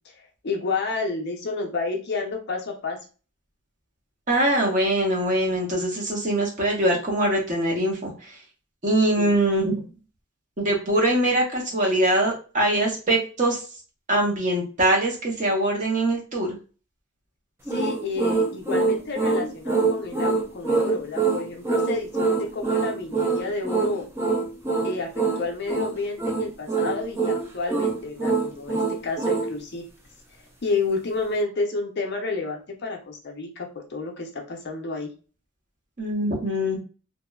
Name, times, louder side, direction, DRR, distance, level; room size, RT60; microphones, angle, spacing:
voice 1, 0.1-3.0 9.2-9.4 17.7-24.1 24.8-29.8 30.6-35.1, left 3 dB, 50° left, 1 dB, 0.5 m, -30 dB
voice 2, 4.3-8.4 8.8-9.8 10.6-13.6 14.1-16.6 36.0-36.8, right 1 dB, 35° right, -1 dB, 0.7 m, -23 dB
sound 1, 17.7-29.5, right 4 dB, 10° right, 0.3 m, -24 dB
2.8 x 2.1 x 2.2 m, 0.36 s
head